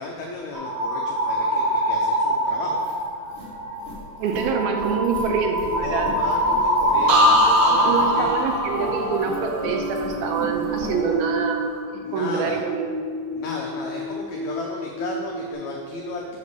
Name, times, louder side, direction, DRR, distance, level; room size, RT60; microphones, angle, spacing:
voice 1, 0.0-2.9 5.8-8.3 10.8-11.3 12.0-12.6 13.3-16.4, left 3 dB, 85° left, -1 dB, 1.5 m, -34 dB
sound 1, 0.5-3.1 3.5-3.8 4.2-14.6 14.8-15.5, right 1 dB, 50° right, 3.0 m, -25 dB
sound 2, 2.6-11.0, left 2 dB, 20° left, 2.0 m, -39 dB
voice 2, 4.2-6.2 7.7-11.6 12.1-12.9, right 5 dB, 85° right, 3 dB, 2.7 m, -25 dB
sound 3, 7.1-10.9 11.3-11.7, left 1 dB, 65° right, 2.2 m, -24 dB
7.7 x 5.3 x 6.6 m, 2.2 s
omnidirectional pair, 4.2 m